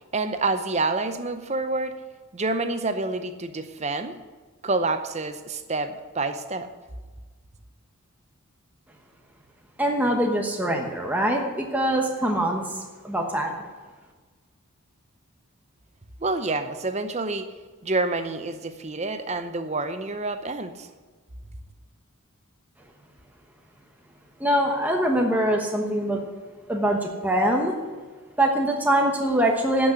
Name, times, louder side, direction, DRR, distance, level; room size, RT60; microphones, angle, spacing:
voice 1, 0.1-1.9 2.3-4.2 4.6-6.7 16.2-17.5 17.8-20.9, right 3 dB, 30° right, 9 dB, 0.7 m, -28 dB
voice 2, 9.8-12.7 13.0-13.5 24.4-26.2 26.7-27.7 28.4-29.9, right 1 dB, 5° right, 0 dB, 1.1 m, -23 dB
11.5 x 6.4 x 7.8 m, 1.4 s
head